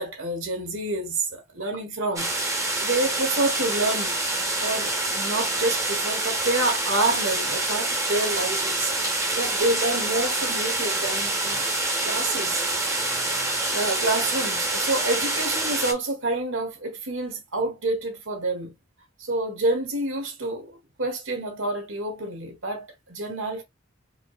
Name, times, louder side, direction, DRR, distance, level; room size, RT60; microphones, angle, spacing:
voice 1, 0.0-4.2 4.6-11.7 12.0-12.7 13.7-18.7 19.2-23.6, right 2 dB, 75° right, 1.4 m, -28 dB
sound 1, 2.2-15.9, right 2 dB, 15° right, 1.0 m, -26 dB
4.7 x 3.1 x 2.4 m
head